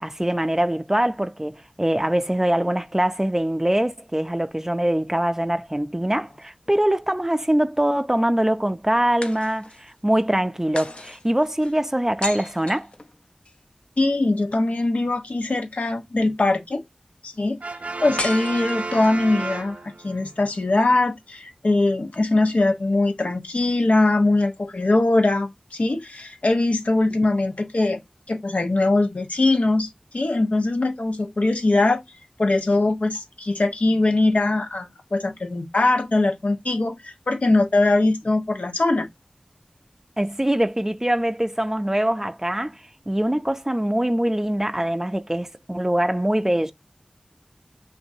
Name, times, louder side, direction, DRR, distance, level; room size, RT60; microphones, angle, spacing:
voice 1, 0.0-12.9 40.2-46.7, right 1 dB, 15° right, 0.5 m, -23 dB
sound 1, 6.1-7.2 9.2-10.0 10.7-13.6 18.2-19.3, left 2 dB, 55° left, 0.8 m, -36 dB
voice 2, 14.0-16.8 17.2-17.6 18.0-19.8 20.0-28.0 28.3-32.0 32.4-39.1, left 2 dB, 80° left, 1.1 m, -21 dB
Brass instrument, 17.6-20.3, right 3 dB, 70° right, 0.4 m, -32 dB
5.9 x 2.6 x 2.7 m
wide cardioid pair, 55°, 2 cm